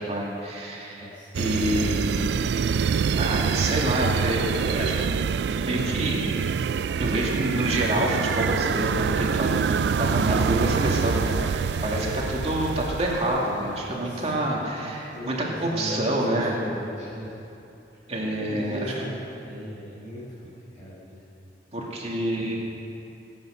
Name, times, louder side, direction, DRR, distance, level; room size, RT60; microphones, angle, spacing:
voice 1, 0.0-2.6 3.2-5.2 5.5-6.3 7.0-16.6 18.1-18.9 21.7-22.6, right 1 dB, 35° right, -3 dB, 2.4 m, -27 dB
voice 2, 0.7-1.6 11.7-12.2 13.7-14.6 15.1-16.0 16.3-17.3 18.4-21.2, equal, 25° left, -11 dB, 5.1 m, -38 dB
sound 1, 1.3-13.7, right 6 dB, 70° right, 0.3 m, -26 dB
24.5 x 8.9 x 6.5 m, 2.8 s
head